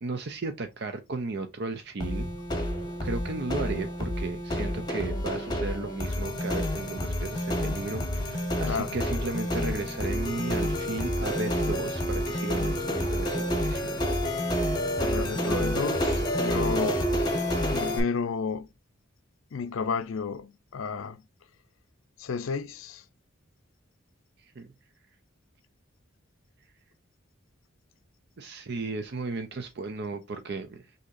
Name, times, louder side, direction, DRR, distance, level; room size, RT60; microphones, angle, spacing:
voice 1, 0.0-2.3 3.0-14.0 24.4-24.7 28.4-30.9, right 3 dB, 50° right, 0.5 m, -35 dB
sound 1, 2.0-18.0, equal, 20° left, 1.1 m, -29 dB
voice 2, 8.6-9.0 15.0-17.1 17.7-18.7 19.5-21.2 22.2-23.0, left 5 dB, 75° left, 0.5 m, -32 dB
6.3 x 2.8 x 2.5 m
head